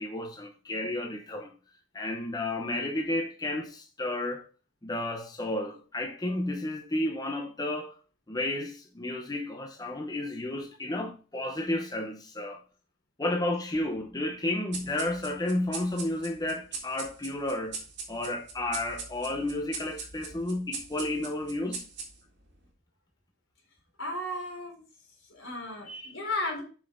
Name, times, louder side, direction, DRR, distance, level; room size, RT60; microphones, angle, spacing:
voice 1, 0.0-1.5 1.9-4.4 4.8-7.9 8.3-12.6 13.2-17.8 18.1-21.8, left 1 dB, 20° left, 0.8 m, -32 dB
sound 1, 14.7-22.5, right 5 dB, 60° right, 2.0 m, -41 dB
voice 2, 24.0-24.8 25.3-26.6, left 1 dB, 85° left, 3.6 m, -34 dB
7.3 x 5.7 x 3.6 m
head